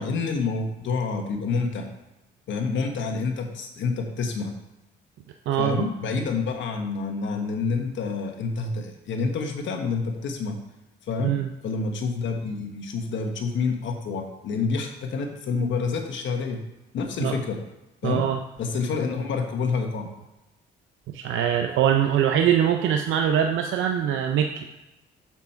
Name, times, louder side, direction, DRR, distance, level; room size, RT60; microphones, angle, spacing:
voice 1, 0.0-1.9 2.5-4.5 5.6-10.6 11.1-11.4 11.6-16.6 16.9-17.6 18.0-18.2 18.6-20.1, left 4 dB, 70° left, 5 dB, 1.2 m, -28 dB
voice 2, 5.5-5.8 11.2-11.5 17.2-17.3 18.0-18.4 21.1-24.7, right 9 dB, 80° right, 5 dB, 0.6 m, -23 dB
7.0 x 5.9 x 4.4 m, 0.95 s
cardioid pair, 90°, 20 cm